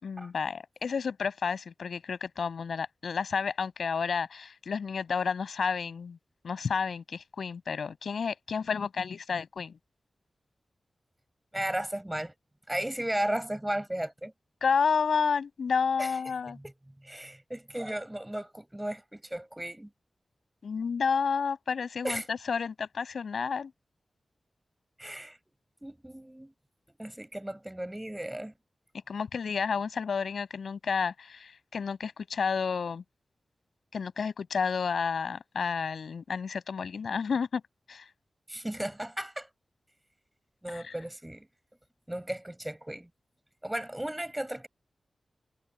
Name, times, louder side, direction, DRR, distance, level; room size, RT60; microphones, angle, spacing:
voice 1, 0.0-6.2 6.4-9.8 14.6-16.6 20.6-23.7 29.1-33.0 33.9-37.6 37.9-38.1 40.7-40.9, left 6 dB, 85° left, 6.8 m, -31 dB
voice 2, 11.5-12.3 12.7-14.3 16.0-16.2 16.5-16.7 17.0-19.9 22.0-22.3 25.0-25.4 25.8-26.5 27.0-28.5 38.5-39.5 40.6-41.5 42.1-43.1 43.6-44.7, right 1 dB, 10° right, 7.8 m, -35 dB
cardioid pair, 65°, 0 cm